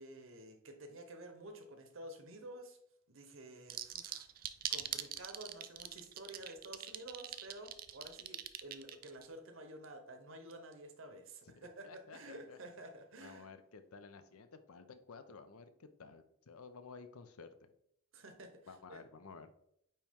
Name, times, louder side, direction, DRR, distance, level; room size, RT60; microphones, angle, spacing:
voice 1, 0.0-2.8 3.1-4.3 4.7-13.5 18.1-19.0, right 1 dB, 65° right, 6 dB, 1.0 m, -51 dB
sound 1, 3.7-9.3, right 11 dB, 40° right, 0.4 m, -42 dB
voice 2, 11.6-12.6 13.2-17.7 18.7-19.5, left 4 dB, 85° left, 10 dB, 0.6 m, -54 dB
8.9 x 3.0 x 3.6 m, 0.72 s
head